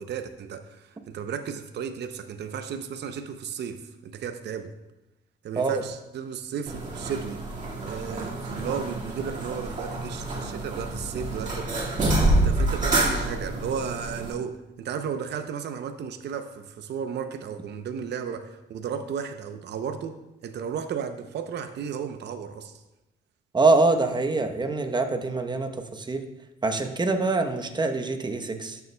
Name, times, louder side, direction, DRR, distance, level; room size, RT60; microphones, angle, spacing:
voice 1, 0.0-4.7 5.4-7.4 7.8-11.7 12.4-22.8, right 7 dB, 60° right, 8 dB, 0.6 m, -34 dB
sound 1, 6.7-14.3, right 2 dB, 40° right, 1.9 m, -27 dB
voice 2, 23.5-26.2 26.6-28.8, right 3 dB, 20° right, 6 dB, 0.9 m, -24 dB
12.5 x 6.9 x 2.2 m, 0.94 s
cardioid pair, 90°, 20 cm